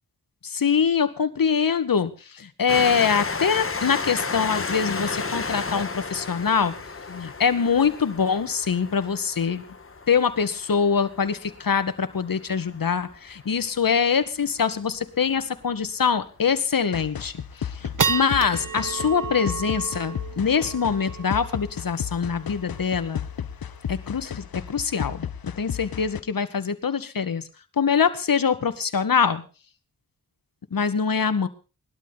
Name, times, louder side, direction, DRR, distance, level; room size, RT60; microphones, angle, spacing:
voice 1, 0.4-2.1 2.4-6.7 7.1-9.6 10.1-17.3 17.8-23.3 23.9-25.3 25.6-27.4 27.8-29.4 30.7-31.5, left 6 dB, 70° left, 11 dB, 2.0 m, -24 dB
Train, 2.7-13.9 14.6-14.7 14.9-15.0, left 4 dB, 40° left, 1.7 m, -33 dB
sound 1, 14.5-14.6 14.8-14.9 15.3-15.6 16.1-16.2 16.7-17.1 17.5-24.1, right 6 dB, 65° right, 1.1 m, -32 dB
sound 2, 16.9-26.2, left 8 dB, 90° left, 1.1 m, -34 dB
20.0 x 12.5 x 4.2 m, 0.34 s
cardioid pair, 55°, 35 cm